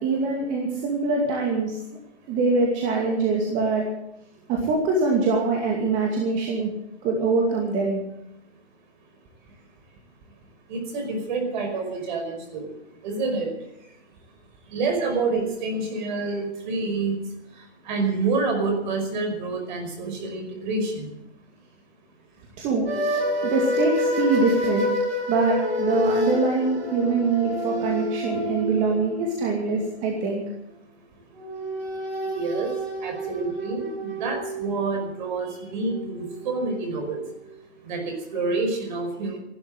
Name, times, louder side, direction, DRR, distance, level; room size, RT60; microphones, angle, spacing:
voice 1, 0.0-1.8 2.3-3.9 4.5-6.7 7.0-8.0 15.3-15.4 22.6-22.9 23.4-24.9 25.3-30.4, right 3 dB, 20° right, -1 dB, 2.5 m, -23 dB
voice 2, 10.7-12.7 13.0-13.5 14.7-17.2 17.9-21.1 32.3-32.7 33.0-37.2 37.8-39.4, right 3 dB, 40° right, 5 dB, 5.2 m, -28 dB
sound 1, 22.9-30.2 31.3-37.4, left 1 dB, 60° right, 6.3 m, -29 dB
15.0 x 12.0 x 7.8 m, 0.84 s
hypercardioid pair, 155°, 34 cm